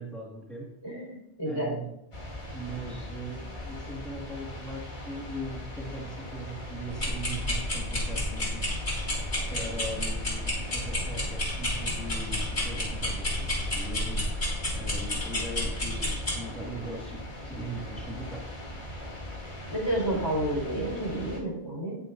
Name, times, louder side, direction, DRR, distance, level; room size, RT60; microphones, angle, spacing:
voice 1, 0.0-0.7 1.4-2.0 2.5-8.6 9.5-14.2 14.7-18.4 20.1-20.2, right 1 dB, ahead, -5 dB, 1.7 m, -40 dB
voice 2, 0.8-1.8 19.7-22.0, right 1 dB, 25° left, -3 dB, 4.6 m, -30 dB
sound 1, 2.1-21.4, left 1 dB, 45° left, 2.1 m, -40 dB
sound 2, 6.9-16.4, left 1 dB, 70° left, 3.6 m, -31 dB
18.5 x 6.7 x 2.6 m, 0.83 s
omnidirectional pair, 1.1 m